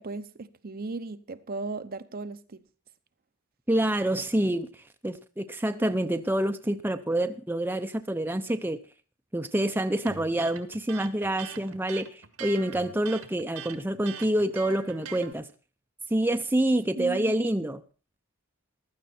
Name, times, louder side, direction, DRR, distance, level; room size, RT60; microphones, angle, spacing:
voice 1, 0.0-2.6 17.0-17.3, right 3 dB, 45° right, 0.7 m, -36 dB
voice 2, 3.7-8.8 9.3-15.5 16.1-17.8, right 1 dB, 10° right, 0.7 m, -27 dB
Electric guitar, 10.1-15.3, right 7 dB, 75° right, 1.8 m, -42 dB
16.0 x 12.0 x 4.3 m
head